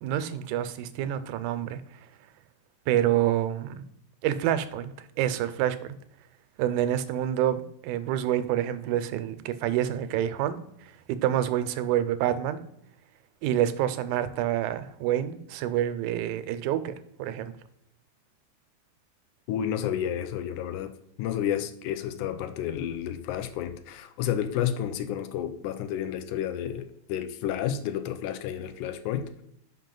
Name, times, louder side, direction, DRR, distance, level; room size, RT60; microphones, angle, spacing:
voice 1, 0.0-1.8 2.9-3.8 4.2-6.0 6.6-12.6 13.4-17.5, right 11 dB, 90° right, 2.1 m, -27 dB
voice 2, 19.5-20.9 21.2-29.4, left 10 dB, 85° left, 2.1 m, -31 dB
5.4 x 5.4 x 3.7 m
omnidirectional pair, 3.5 m